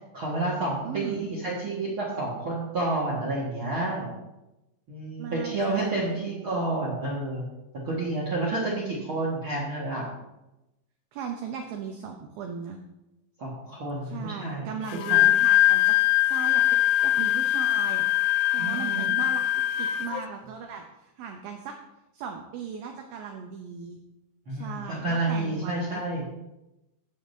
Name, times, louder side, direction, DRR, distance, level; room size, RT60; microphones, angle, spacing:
voice 1, 0.1-4.1 4.9-7.4 7.8-10.1 13.4-14.7 15.1-15.3 18.6-19.1 24.5-26.2, right 2 dB, 65° right, -5 dB, 1.3 m, -30 dB
voice 2, 0.8-1.3 5.2-6.5 11.1-12.8 14.1-16.0 16.2-18.1 18.5-19.4 19.8-21.8 22.1-24.0 24.5-26.0, right 7 dB, 85° right, 3 dB, 2.1 m, -38 dB
Wind instrument woodwind instrument, 14.9-20.2, left 14 dB, 85° left, 2.4 m, -22 dB
14.5 x 8.7 x 2.7 m, 0.95 s
omnidirectional pair, 5.2 m